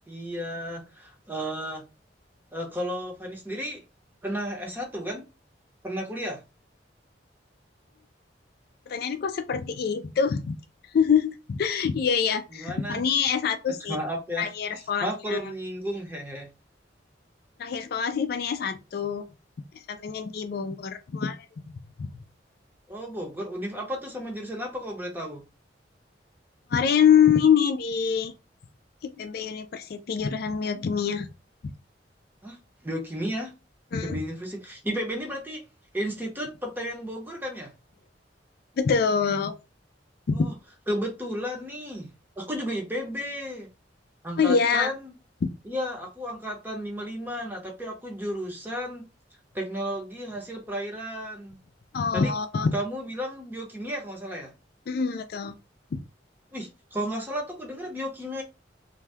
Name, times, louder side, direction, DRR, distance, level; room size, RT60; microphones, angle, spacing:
voice 1, 0.1-1.8 2.5-3.8 4.2-5.2 5.8-6.4 12.5-13.0 13.9-16.5 22.9-25.4 32.4-33.5 34.0-35.6 35.9-37.7 40.3-40.5 40.9-42.1 42.4-43.7 44.2-45.1 45.6-49.1 49.5-51.6 52.1-52.3 52.7-54.5 56.5-58.4, equal, 10° right, 0.8 m, -33 dB
voice 2, 8.9-10.5 10.9-14.0 14.4-15.4 17.6-19.2 19.7-21.5 22.0-22.1 26.7-28.3 29.0-31.3 33.9-34.2 38.8-39.6 40.3-40.5 44.4-44.9 45.4-45.5 51.9-52.7 54.9-55.6 55.9-56.0, left 6 dB, 55° left, 0.3 m, -25 dB
2.6 x 2.2 x 3.3 m
head